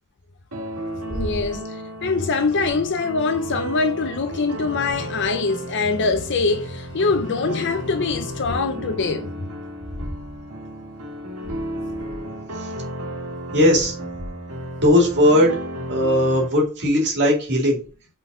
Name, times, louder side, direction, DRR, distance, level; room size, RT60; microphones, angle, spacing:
sound 1, 0.5-16.5, right 1 dB, 80° right, 1.7 m, -33 dB
voice 1, 1.1-9.3, left 4 dB, 55° left, 0.7 m, -23 dB
voice 2, 13.5-14.0 14.8-15.5 15.9-17.8, left 1 dB, 50° right, 2.4 m, -18 dB
5.7 x 4.0 x 4.9 m
head